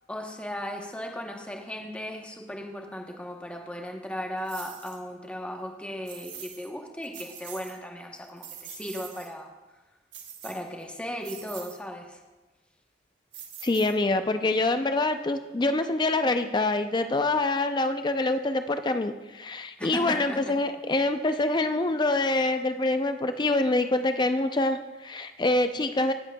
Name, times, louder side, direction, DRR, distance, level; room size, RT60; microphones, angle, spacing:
voice 1, 0.1-9.5 10.4-12.2 19.8-20.5, equal, 5° left, 2 dB, 0.9 m, -36 dB
sound 1, 4.5-5.0 6.1-6.7 7.0-7.8 8.2-9.3 10.1-10.8 11.2-11.8 13.3-14.2, right 8 dB, 85° right, 1.3 m, -44 dB
voice 2, 13.6-26.1, left 2 dB, 25° left, 9 dB, 0.4 m, -25 dB
17.0 x 7.9 x 2.2 m, 1.1 s
head